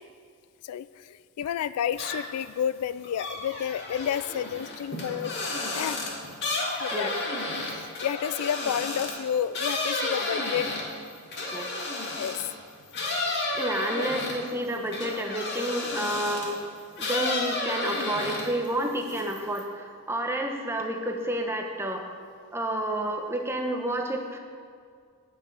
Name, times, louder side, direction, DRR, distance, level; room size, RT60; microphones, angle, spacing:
voice 1, 0.6-5.3 5.7-6.0 6.8-7.1 7.7-10.7 12.1-12.4 14.0-14.1, left 9 dB, 85° left, 16 dB, 0.3 m, -30 dB
sound 1, 1.9-2.5 2.8-12.5 12.9-16.6 17.0-18.7 19.0-19.6, left 2 dB, 55° left, 1.8 m, -32 dB
voice 2, 13.5-16.6 17.0-22.1 22.5-24.4, right 1 dB, 10° right, 3 dB, 0.9 m, -30 dB
8.9 x 6.1 x 8.2 m, 2.1 s
head